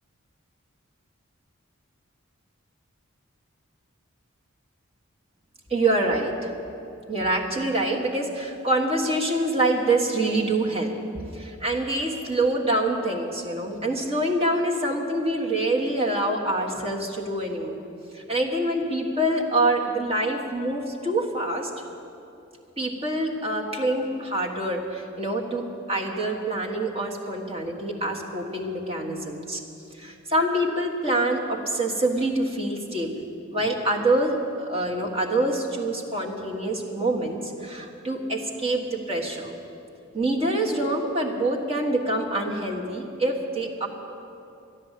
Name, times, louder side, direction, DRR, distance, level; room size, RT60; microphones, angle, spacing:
voice 1, 5.7-6.5 7.1-10.9 11.3-17.8 18.1-21.7 22.8-29.6 30.0-33.2 33.5-39.5 40.1-43.9, right 1 dB, 30° right, -2 dB, 1.5 m, -26 dB
13.0 x 10.5 x 8.2 m, 2.7 s
head